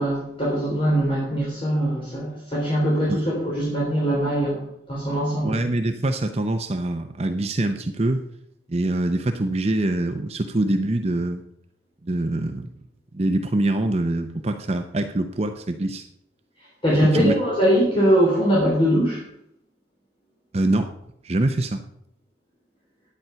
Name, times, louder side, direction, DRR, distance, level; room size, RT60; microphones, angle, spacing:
voice 1, 0.0-5.6 16.8-19.2, equal, 30° left, -6 dB, 3.5 m, -22 dB
voice 2, 5.4-8.2 8.7-11.4 12.0-12.7 13.1-16.0 17.1-17.3 20.5-20.9 21.2-21.8, right 1 dB, 35° right, 6 dB, 0.6 m, -24 dB
10.5 x 9.0 x 5.7 m, 0.74 s
head